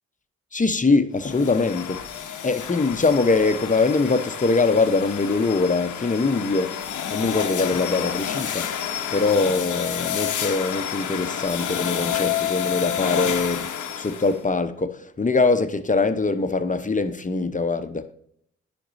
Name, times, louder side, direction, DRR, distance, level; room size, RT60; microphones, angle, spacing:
voice 1, 0.5-2.0 2.4-6.8 7.1-8.7 9.1-13.7 14.0-18.1, left 3 dB, 25° left, 0.8 m, -22 dB
sound 1, 1.2-14.4, left 9 dB, 70° left, 0.9 m, -29 dB
10.0 x 5.3 x 2.7 m
supercardioid pair, 40°, 32 cm